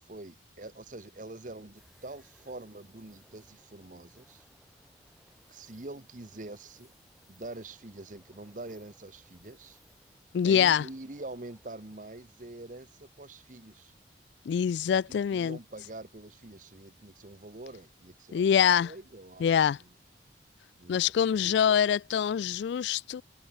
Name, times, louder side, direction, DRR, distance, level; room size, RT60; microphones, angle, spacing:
voice 1, 0.1-4.4 5.5-6.9 7.3-9.8 10.4-13.9 15.1-19.6 20.8-21.0 21.3-21.8, right 2 dB, 45° right, 1.2 m, -45 dB
sound 1, 1.7-14.8 15.2-15.3 17.7-18.1, equal, ahead, 4.0 m, -67 dB
voice 2, 10.3-10.9 14.5-15.6 18.3-18.9 19.4-19.8 20.9-23.2, left 8 dB, 70° left, 0.3 m, -25 dB
head